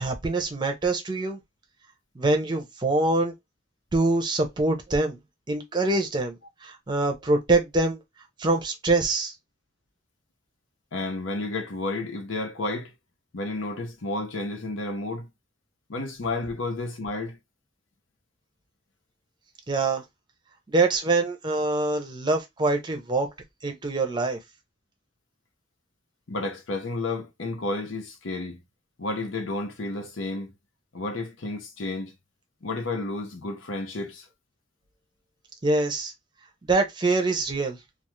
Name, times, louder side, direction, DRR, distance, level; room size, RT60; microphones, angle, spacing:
voice 1, 0.0-1.4 2.2-3.3 3.9-5.2 5.5-6.3 6.6-8.0 8.4-9.3 19.7-20.0 20.7-23.3 23.6-24.4 35.6-36.1 36.7-37.8, right 2 dB, 25° right, 0.6 m, -24 dB
voice 2, 10.9-12.9 13.3-15.3 15.9-17.4 26.3-28.6 29.0-30.5 30.9-32.1 32.6-34.3, left 2 dB, 85° left, 0.7 m, -31 dB
2.4 x 2.4 x 3.0 m
head